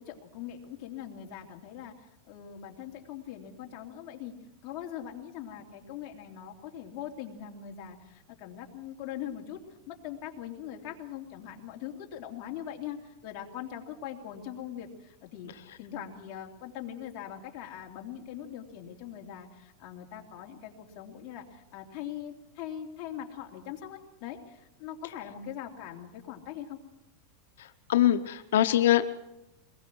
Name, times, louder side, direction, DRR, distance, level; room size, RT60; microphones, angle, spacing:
voice 1, 0.0-4.3 4.6-9.6 9.9-15.5 15.8-26.8, left 10 dB, 40° left, 0 dB, 3.0 m, -41 dB
voice 2, 27.9-29.1, left 12 dB, 90° left, 9 dB, 0.8 m, -23 dB
23.0 x 21.0 x 6.2 m, 0.92 s
supercardioid pair, 165°, 0 cm